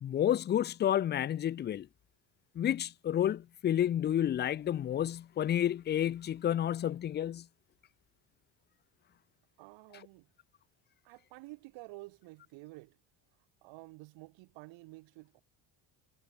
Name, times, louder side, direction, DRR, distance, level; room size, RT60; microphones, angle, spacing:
voice 1, 0.0-1.9 2.6-7.5, left 10 dB, 25° left, 0.3 m, -30 dB
voice 2, 9.6-10.3 11.0-13.0 13.6-15.4, right 23 dB, 85° right, 5.9 m, -50 dB
cardioid pair, 120°, 44 cm